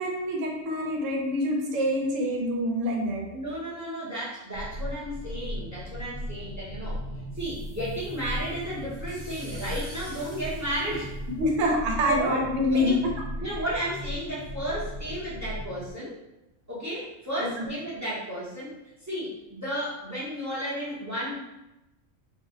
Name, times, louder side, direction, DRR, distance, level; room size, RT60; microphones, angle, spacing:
voice 1, 0.0-3.3 11.3-13.1 17.4-17.7, left 1 dB, 75° right, 0 dB, 1.0 m, -26 dB
voice 2, 3.3-7.0 7.3-11.2 12.0-12.5 12.7-13.0 13.4-16.2 16.7-18.7 19.0-21.3, right 1 dB, 15° right, -8 dB, 0.6 m, -33 dB
sound 1, 4.5-15.9, equal, 75° left, 1.0 m, -37 dB
sound 2, 7.4-11.7, right 1 dB, 35° right, 1.0 m, -49 dB
2.5 x 2.0 x 3.6 m, 0.94 s
omnidirectional pair, 1.4 m